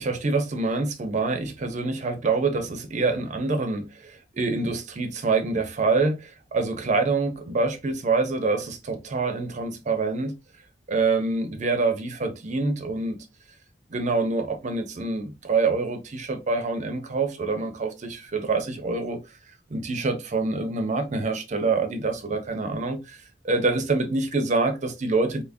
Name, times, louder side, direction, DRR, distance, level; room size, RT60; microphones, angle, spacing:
voice 1, 0.0-10.3 10.9-13.2 13.9-19.2 19.7-23.2 23.4-25.4, right 3 dB, 40° right, 0.5 m, -26 dB
3.5 x 2.8 x 2.5 m
head